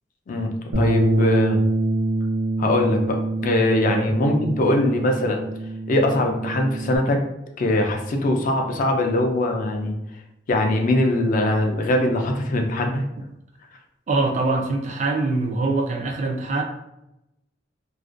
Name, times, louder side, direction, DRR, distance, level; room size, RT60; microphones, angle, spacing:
voice 1, 0.3-1.6 2.6-3.2 3.4-5.5 5.9-7.2 7.6-10.0 10.5-13.0, left 1 dB, 45° left, 3 dB, 0.3 m, -22 dB
Bass guitar, 0.7-7.0, right 1 dB, 85° right, 0.6 m, -24 dB
voice 2, 14.1-16.6, right 3 dB, 40° right, 3 dB, 0.3 m, -23 dB
2.4 x 2.1 x 2.5 m, 0.86 s
head